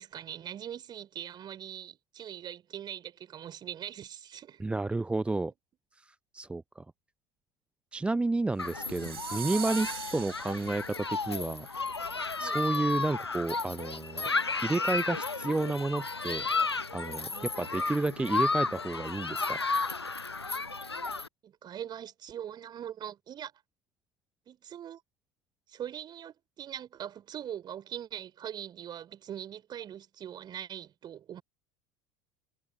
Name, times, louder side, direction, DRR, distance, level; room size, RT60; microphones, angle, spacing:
voice 1, 0.0-4.6 12.4-12.6 17.3-17.5 21.4-23.5 24.5-25.0 25.7-31.4, right 10 dB, 35° right, 3.2 m, -42 dB
voice 2, 4.6-5.5 6.0-6.8 7.9-11.7 12.4-14.3 14.6-16.5 16.9-19.6, right 2 dB, 10° right, 0.6 m, -31 dB
Human group actions, 8.6-21.3, left 4 dB, 85° left, 0.8 m, -33 dB
sound 1, 8.7-11.2, right 8 dB, 75° right, 3.9 m, -41 dB
figure-of-eight pair, 70°, 13 cm